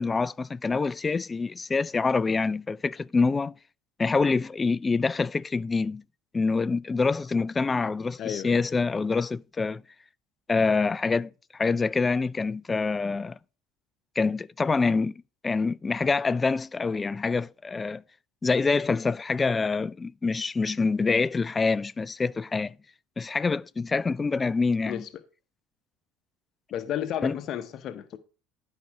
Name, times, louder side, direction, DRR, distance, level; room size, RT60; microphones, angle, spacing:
voice 1, 0.0-3.5 4.0-6.0 6.3-9.8 10.5-13.4 14.2-15.1 15.4-18.0 18.4-22.8 23.2-25.0 27.2-27.3, left 4 dB, 25° left, 0.4 m, -26 dB
voice 2, 8.2-8.6 24.8-25.1 26.7-28.2, left 10 dB, 50° left, 0.8 m, -32 dB
11.5 x 5.4 x 4.7 m
hypercardioid pair, 80°, 0 cm